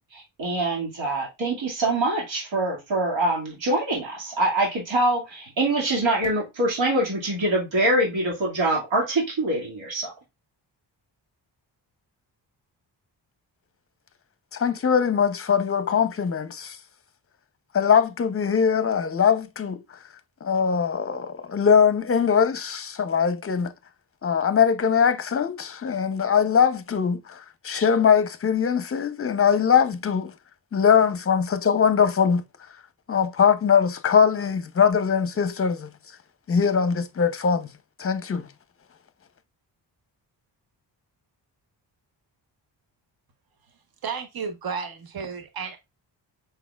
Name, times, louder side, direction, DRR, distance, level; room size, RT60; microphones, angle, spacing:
voice 1, 0.1-10.1, right 1 dB, 90° right, 2.2 m, -24 dB
voice 2, 14.5-16.8 17.7-19.8 20.4-23.7 24.2-30.3 30.7-32.4 33.1-35.9 36.5-37.7 38.0-38.5, left 7 dB, 30° left, 0.6 m, -21 dB
voice 3, 44.0-45.8, right 6 dB, 55° right, 1.0 m, -32 dB
5.5 x 4.1 x 2.3 m
cardioid pair, 85°, 44 cm